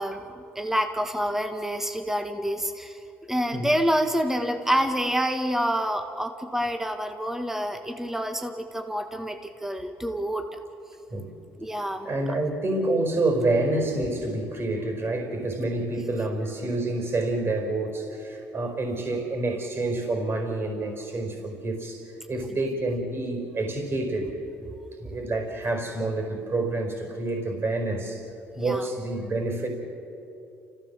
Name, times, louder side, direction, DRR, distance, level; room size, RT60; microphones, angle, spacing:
voice 1, 0.0-10.6 11.6-12.1 15.6-15.7 25.0-25.1 28.6-28.9, equal, 5° right, 5 dB, 1.7 m, -28 dB
voice 2, 12.0-24.3 25.0-28.2 28.5-29.7, right 2 dB, 40° right, 4 dB, 4.9 m, -28 dB
29.5 x 15.0 x 7.5 m, 2.8 s
supercardioid pair, 65°, 7 cm